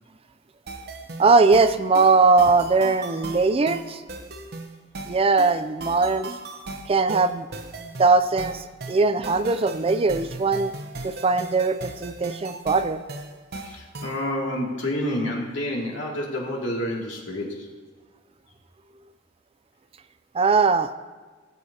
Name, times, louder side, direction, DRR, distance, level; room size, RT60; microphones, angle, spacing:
sound 1, 0.7-14.3, right 2 dB, 55° right, 0.9 m, -37 dB
voice 1, 1.2-4.0 5.1-6.3 6.9-7.5 7.8-10.7 11.0-13.0 20.3-20.9, right 4 dB, 30° right, 12 dB, 0.4 m, -20 dB
voice 2, 13.6-17.7, left 1 dB, 75° left, -3 dB, 2.5 m, -29 dB
18.5 x 8.2 x 2.8 m, 1.4 s
head